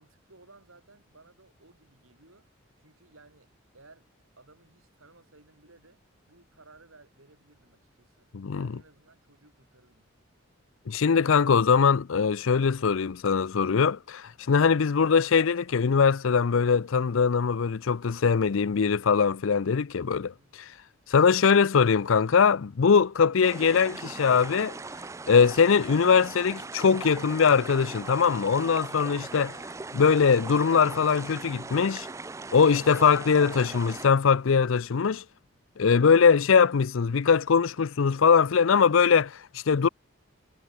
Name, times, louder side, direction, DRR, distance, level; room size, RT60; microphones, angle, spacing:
voice 1, 0.0-2.5 2.8-3.5 3.7-4.1 4.4-8.3 8.6-10.1 20.2-20.5, right 3 dB, 85° right, 5.7 m, -58 dB
voice 2, 8.3-8.7 10.9-20.3 20.6-20.7 21.1-24.7 25.3-29.6 29.9-32.1 32.5-35.2 35.8-39.9, left 6 dB, 75° left, 0.5 m, -22 dB
sound 1, 23.4-34.1, right 3 dB, 15° right, 0.3 m, -40 dB
head